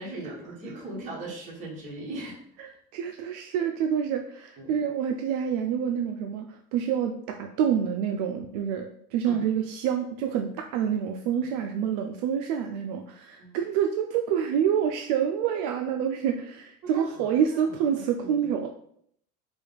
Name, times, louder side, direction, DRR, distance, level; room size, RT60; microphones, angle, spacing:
voice 1, 0.0-2.8 4.6-4.8 9.3-9.5 13.4-13.6 16.9-18.5, right 2 dB, 40° right, -3 dB, 1.5 m, -40 dB
voice 2, 2.6-18.7, right 8 dB, 75° right, 4 dB, 0.4 m, -27 dB
4.8 x 2.3 x 3.3 m, 0.67 s
cardioid pair, 140°, 20 cm